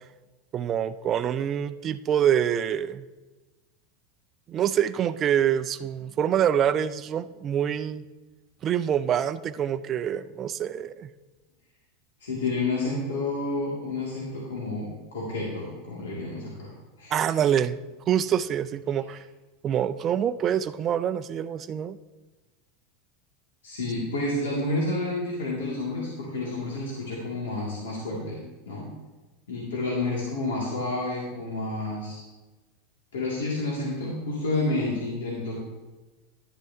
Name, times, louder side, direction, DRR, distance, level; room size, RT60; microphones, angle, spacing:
voice 1, 0.5-3.0 4.5-8.0 8.6-11.1 17.1-17.8 18.1-19.2 19.6-22.0, right 9 dB, 40° right, 11 dB, 0.5 m, -25 dB
voice 2, 12.2-17.1 23.6-28.9 29.5-32.2 33.1-35.7, left 2 dB, 80° left, -5 dB, 2.3 m, -30 dB
11.5 x 10.5 x 2.8 m, 1.2 s
hypercardioid pair, 90°, 0 cm